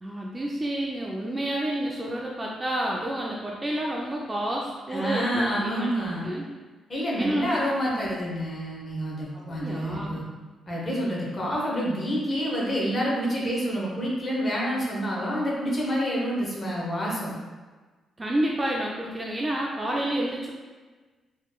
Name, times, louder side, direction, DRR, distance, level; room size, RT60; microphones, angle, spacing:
voice 1, 0.0-5.9 6.2-6.4 7.2-7.6 9.6-10.2 18.2-20.5, right 1 dB, 15° right, -2 dB, 0.3 m, -29 dB
voice 2, 4.9-6.3 6.9-10.2 10.7-17.3, equal, 25° left, -4 dB, 0.8 m, -28 dB
4.3 x 3.0 x 2.3 m, 1.3 s
cardioid pair, 165°, 0 cm